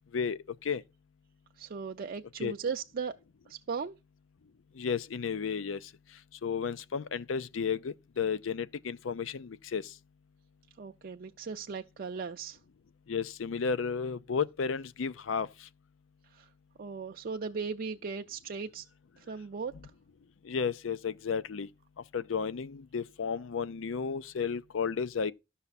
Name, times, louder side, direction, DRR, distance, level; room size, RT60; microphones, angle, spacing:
voice 1, 0.1-0.8 2.4-2.5 4.8-5.8 6.4-9.9 13.1-15.5 20.4-21.7 22.1-25.3, left 6 dB, 70° left, 0.5 m, -33 dB
voice 2, 1.6-3.1 3.5-4.0 10.8-12.6 16.3-16.5 16.8-18.9 19.2-19.7, right 5 dB, 50° right, 0.4 m, -37 dB
12.5 x 5.7 x 4.1 m
head